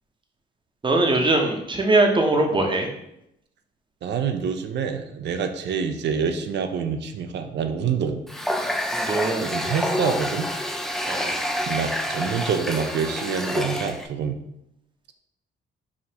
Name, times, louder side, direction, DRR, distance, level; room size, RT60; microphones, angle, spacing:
voice 1, 0.8-2.9 8.9-9.5 11.1-11.3, right 2 dB, 25° right, 2 dB, 0.7 m, -21 dB
voice 2, 4.0-8.2 9.4-10.5 11.7-14.4, right 6 dB, 60° right, 7 dB, 0.5 m, -26 dB
Water tap faucet, 8.3-14.1, left 1 dB, ahead, 0.3 m, -28 dB
4.9 x 2.5 x 2.8 m, 0.80 s
cardioid pair, 90°, 20 cm